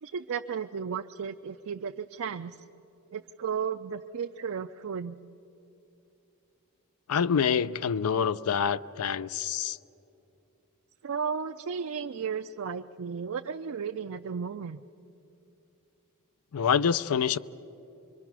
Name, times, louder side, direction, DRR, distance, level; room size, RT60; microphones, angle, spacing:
voice 1, 0.0-2.6 3.1-5.2 11.0-14.8, right 6 dB, 65° right, 0.4 m, -34 dB
voice 2, 7.1-9.8 16.5-17.4, left 7 dB, 75° left, 0.5 m, -26 dB
25.0 x 23.0 x 6.0 m
head